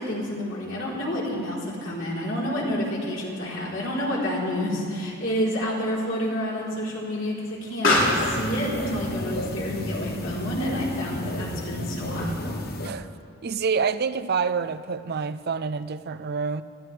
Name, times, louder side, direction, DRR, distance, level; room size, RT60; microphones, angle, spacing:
voice 1, 0.0-12.6, equal, 70° left, 3.8 m, -29 dB
Explosion, 3.7-12.7, left 1 dB, 90° left, 3.4 m, -31 dB
sound 1, 7.9-12.9, left 1 dB, 50° left, 1.0 m, -32 dB
voice 2, 13.4-16.6, right 5 dB, 55° right, 0.5 m, -27 dB
23.5 x 16.0 x 3.3 m
head